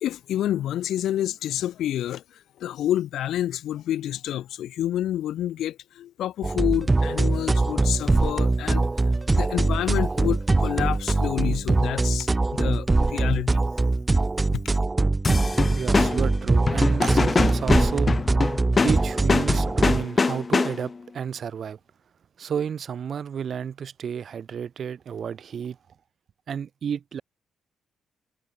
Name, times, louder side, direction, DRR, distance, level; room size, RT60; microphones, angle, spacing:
voice 1, 0.0-8.9 9.3-13.6 14.5-14.6, left 12 dB, 75° left, 0.7 m, -28 dB
sound 1, 6.4-20.0, right 3 dB, 20° right, 1.3 m, -22 dB
sound 2, 15.2-21.0, left 4 dB, 30° left, 0.6 m, -24 dB
voice 2, 15.7-18.1 18.8-21.8 22.4-25.8 26.5-27.2, right 7 dB, 55° right, 2.2 m, -31 dB
cardioid pair, 90°, 0 cm